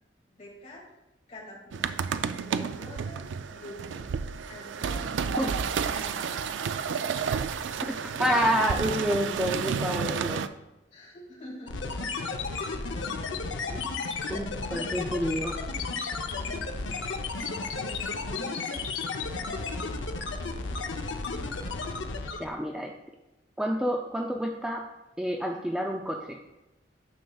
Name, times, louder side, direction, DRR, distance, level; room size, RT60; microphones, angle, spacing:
voice 1, 0.3-0.8 1.3-2.0 2.3-4.1 4.5-5.6 5.8-7.4 10.9-12.1 12.6-13.2 16.2-17.0 17.7-18.8, left 1 dB, 35° left, -4 dB, 2.1 m, -47 dB
sound 1, 1.7-10.5, right 6 dB, 80° right, 0.3 m, -31 dB
voice 2, 8.0-10.4 13.7-13.8 14.3-15.6 22.4-22.9 23.6-24.8 25.2-26.4, equal, 5° right, 1 dB, 0.3 m, -28 dB
sound 2, 11.7-22.6, left 4 dB, 90° left, 0.6 m, -33 dB
9.4 x 6.5 x 2.3 m, 0.98 s
head